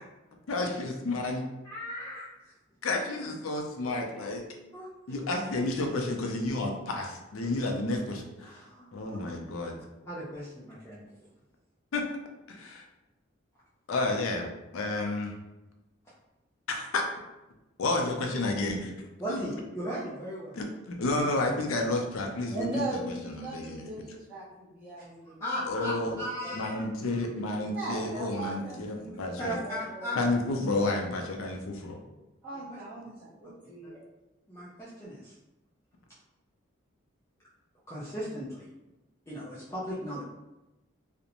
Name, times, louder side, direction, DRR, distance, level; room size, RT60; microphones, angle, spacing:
voice 1, 0.5-1.4 2.8-4.4 5.1-8.5 8.9-9.8 11.9-12.1 12.5-12.8 13.9-14.5 14.7-15.3 16.7-17.0 17.8-18.9 19.3-19.4 20.5-22.7 23.2-23.9 25.7-26.2 26.5-29.6 30.2-32.0, left 2 dB, 90° left, 2 dB, 0.5 m, -31 dB
voice 2, 1.6-2.2 4.7-4.9 5.5-5.7 8.4-9.2 10.0-11.0 19.2-20.6 25.4-27.2 29.4-30.2 33.0-33.1 33.8-33.9 34.5-35.3 37.9-38.7 39.3-40.2, equal, 15° left, -9 dB, 0.4 m, -37 dB
voice 3, 22.5-25.4 26.4-26.5 27.7-29.1 29.5-30.2 32.4-33.9, right 2 dB, 5° right, -12 dB, 0.7 m, -38 dB
2.4 x 2.0 x 2.8 m, 1.0 s
head